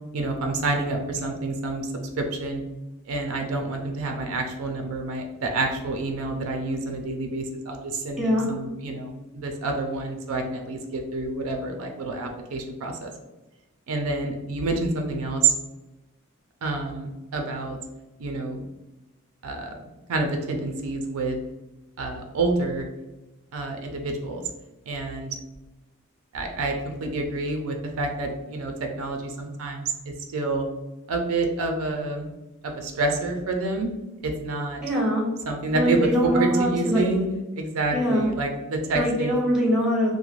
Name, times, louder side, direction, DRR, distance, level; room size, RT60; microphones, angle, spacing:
voice 1, 0.1-1.9 2.2-2.6 3.1-13.1 13.9-15.5 16.6-17.8 18.2-18.7 19.4-19.7 20.1-21.4 22.0-22.9 23.5-24.4 24.9-25.4 26.3-30.7 31.1-32.3 32.6-33.9 34.2-34.8 35.5-36.1 36.4-37.3 37.6-39.5, right 3 dB, 75° right, 4 dB, 0.4 m, -28 dB
voice 2, 34.8-35.3 35.7-37.1 37.9-38.3 38.9-40.1, equal, 5° right, -4 dB, 0.7 m, -23 dB
3.0 x 2.0 x 2.4 m, 1.0 s
head